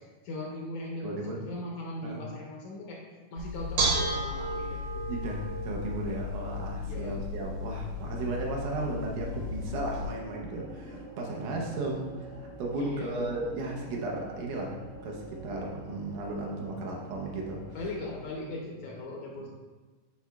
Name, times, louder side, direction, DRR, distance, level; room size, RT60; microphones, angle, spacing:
voice 1, 0.2-3.0 3.3-5.1 6.7-7.2 12.8-13.2 17.7-19.5, left 2 dB, 75° left, -2 dB, 1.8 m, -39 dB
voice 2, 1.0-1.4 2.0-2.2 5.1-17.6 18.4-18.6 19.4-19.5, right 2 dB, 75° right, -1 dB, 2.2 m, -35 dB
Bell / Dishes pots and pans, 3.4-10.0, equal, 60° right, 1.9 m, -33 dB
sound 1, 7.8-18.3, right 1 dB, 55° left, 1.0 m, -46 dB
8.5 x 4.9 x 2.3 m, 1.3 s
omnidirectional pair, 3.8 m